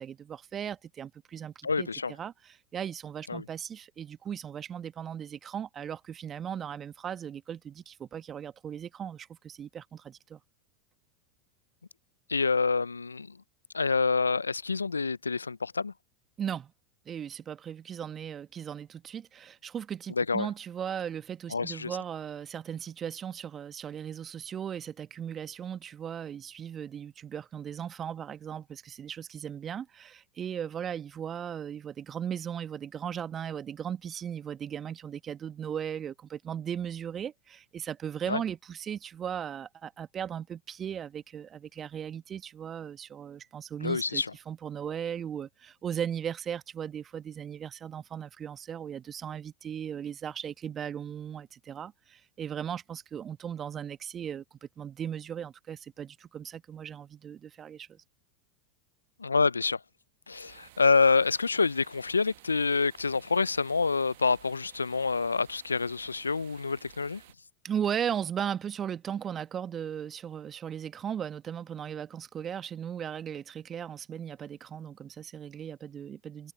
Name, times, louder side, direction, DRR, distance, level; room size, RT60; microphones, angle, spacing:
voice 1, 0.0-1.9 2.2-10.4 16.4-16.7 17.0-58.0 67.6-76.5, right 8 dB, 30° right, 1.6 m, -37 dB
voice 2, 1.6-2.1 3.3-3.4 12.3-13.4 13.7-15.9 20.2-20.5 21.5-22.0 38.3-38.4 43.8-44.3 59.2-59.8 60.3-67.2, left 4 dB, 85° left, 0.5 m, -27 dB
sound 1, 60.3-67.3, right 18 dB, 60° right, 1.3 m, -55 dB
figure-of-eight pair, 85°, 0 cm